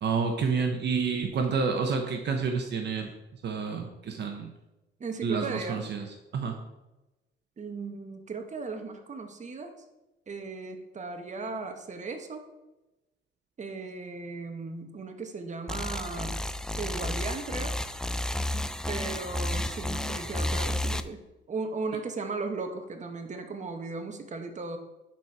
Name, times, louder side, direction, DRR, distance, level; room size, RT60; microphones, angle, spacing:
voice 1, 0.0-3.1 3.4-4.5 5.2-6.1 6.3-6.5, right 5 dB, 60° right, 4 dB, 1.1 m, -29 dB
voice 2, 5.0-5.8 7.6-9.7 10.3-12.4 13.6-16.4 16.8-17.7 18.9-21.2 21.5-24.8, right 4 dB, 35° right, 5 dB, 1.3 m, -36 dB
sound 1, 15.7-21.0, left 1 dB, 5° left, 0.4 m, -31 dB
10.5 x 4.4 x 4.8 m, 1.0 s
cardioid pair, 90°, 20 cm